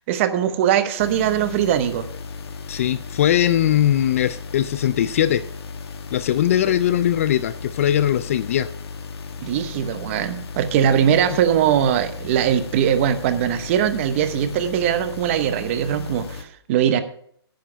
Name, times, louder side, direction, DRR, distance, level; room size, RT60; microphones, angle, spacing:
voice 1, 0.1-2.1 9.4-17.0, right 9 dB, 30° right, 11 dB, 0.9 m, -21 dB
sound 1, 1.0-16.4, left 5 dB, 70° left, 2.0 m, -36 dB
voice 2, 2.7-5.4 6.1-8.7, left 11 dB, 30° left, 15 dB, 0.3 m, -20 dB
10.5 x 7.4 x 5.8 m, 0.62 s
hypercardioid pair, 160°, 14 cm